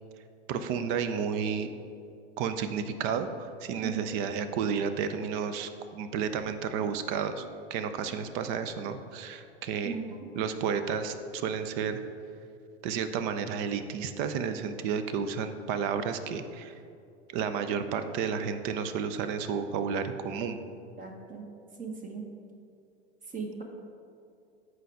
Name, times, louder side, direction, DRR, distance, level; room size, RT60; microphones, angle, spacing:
voice 1, 0.5-1.7 2.4-7.4 7.7-9.9 10.4-12.0 12.8-16.7 17.3-20.6, right 6 dB, 45° right, 9 dB, 0.6 m, -31 dB
voice 2, 9.8-10.2 21.0-21.4 21.8-22.2 23.3-23.6, right 4 dB, 25° right, 2 dB, 1.0 m, -37 dB
7.7 x 4.7 x 4.9 m, 2.5 s
figure-of-eight pair, 85°, 33 cm